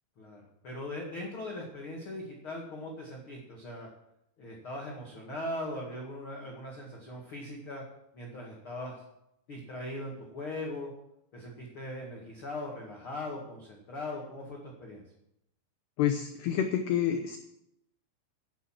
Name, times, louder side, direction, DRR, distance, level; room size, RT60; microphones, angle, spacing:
voice 1, 0.2-3.9 4.4-7.8 8.1-9.0 9.5-10.9 11.3-15.0, left 1 dB, 60° left, -2 dB, 1.3 m, -40 dB
voice 2, 16.0-17.4, left 9 dB, 85° left, 6 dB, 2.3 m, -28 dB
10.5 x 9.0 x 7.5 m, 0.80 s
omnidirectional pair, 6.0 m